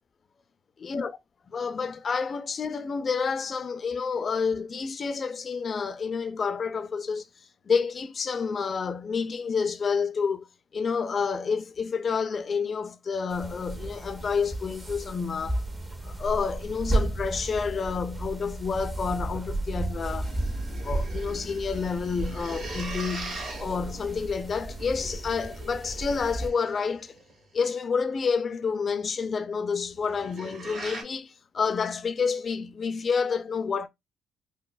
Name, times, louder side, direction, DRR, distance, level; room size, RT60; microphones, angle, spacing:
voice 1, 0.8-1.1 1.5-7.3 7.7-10.5 10.7-15.6 16.0-20.4 20.8-27.1 27.5-33.9, left 5 dB, 45° left, 0.4 m, -29 dB
sound 1, 13.3-26.5, right 2 dB, 25° right, 0.7 m, -33 dB
sound 2, 19.8-27.4 29.8-31.0, right 2 dB, 60° right, 1.7 m, -42 dB
3.8 x 2.0 x 2.3 m
cardioid pair, 75°, 0 cm